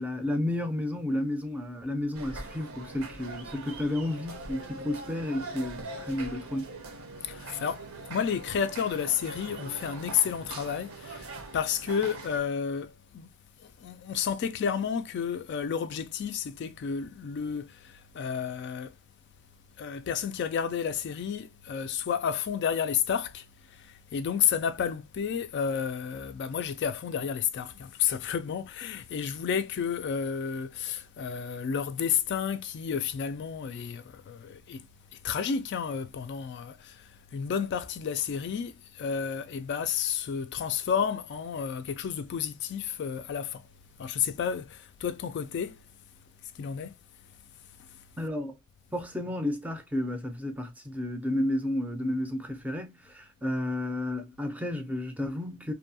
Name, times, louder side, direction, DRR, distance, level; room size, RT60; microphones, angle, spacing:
voice 1, 0.0-6.7 48.2-48.6 48.9-55.7, left 1 dB, 5° right, 0.5 m, -32 dB
sound 1, 2.1-12.4, right 2 dB, 80° right, 0.8 m, -42 dB
voice 2, 7.2-13.3 13.6-19.0 19.8-34.9 35.1-43.7 44.0-45.8 46.4-46.9 47.8-48.0, left 7 dB, 55° left, 0.3 m, -31 dB
2.7 x 2.2 x 2.6 m
head